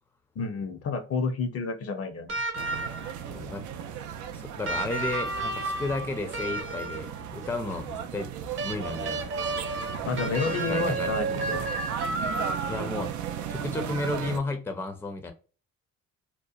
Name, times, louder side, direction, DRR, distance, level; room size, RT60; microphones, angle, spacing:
voice 1, 0.4-2.3 10.1-11.7, left 4 dB, 50° left, 0.6 m, -30 dB
sound 1, 2.3-3.2 4.6-7.2 8.6-13.0 14.4-14.5, right 2 dB, 45° right, 0.9 m, -32 dB
sound 2, 2.5-14.4, right 8 dB, 75° right, 0.5 m, -36 dB
voice 2, 3.2-3.7 4.3-8.3 8.6-9.3 10.7-11.1 11.5-11.6 12.7-13.1 13.5-15.3, left 2 dB, 10° left, 0.5 m, -33 dB
2.8 x 2.1 x 2.3 m
cardioid pair, 90°, 30 cm